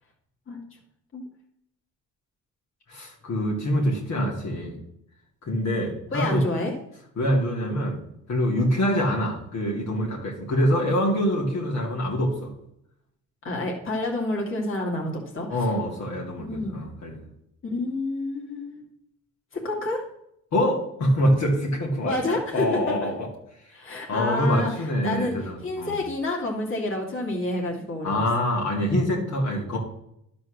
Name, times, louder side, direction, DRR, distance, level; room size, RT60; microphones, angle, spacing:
voice 1, 2.9-4.8 5.4-6.5 7.2-8.0 8.3-12.5 15.5-17.2 20.5-23.3 24.1-26.0 28.0-29.8, equal, 60° left, -2 dB, 2.4 m, -25 dB
voice 2, 6.1-6.7 13.4-15.7 16.5-16.7 17.6-18.8 19.5-20.0 22.0-22.7 23.0-23.1 23.7-25.4 25.6-28.3 28.9-29.2, left 2 dB, 45° left, -1 dB, 2.5 m, -29 dB
11.0 x 4.2 x 6.4 m, 0.76 s
cardioid pair, 90°, 30 cm